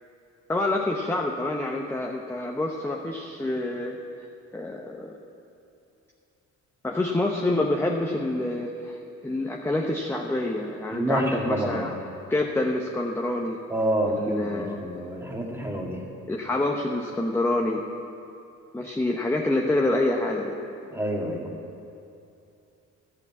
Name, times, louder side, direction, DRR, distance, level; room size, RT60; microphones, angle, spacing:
voice 1, 0.5-4.0 4.5-5.2 6.8-12.0 12.3-13.6 14.0-15.1 16.3-17.9 18.7-20.6, left 2 dB, 10° left, 1 dB, 0.9 m, -27 dB
voice 2, 10.9-11.9 13.7-16.1 20.9-21.6, right 1 dB, 10° right, -1 dB, 2.0 m, -28 dB
12.0 x 8.2 x 7.3 m, 2.8 s
cardioid pair, 90°, 30 cm